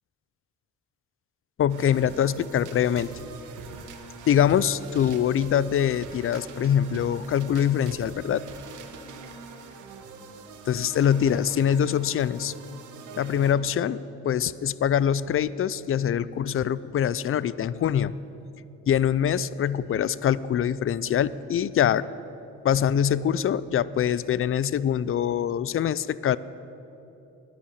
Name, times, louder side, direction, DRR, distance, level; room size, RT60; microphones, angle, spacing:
voice 1, 1.6-3.1 4.3-8.4 10.7-12.5 13.2-18.1 18.9-22.0 22.6-26.4, left 9 dB, 45° left, 19 dB, 0.5 m, -24 dB
sound 1, 1.7-13.7, right 4 dB, 80° right, 1.3 m, -43 dB
11.0 x 10.0 x 9.9 m, 2.9 s
cardioid pair, 90°, 30 cm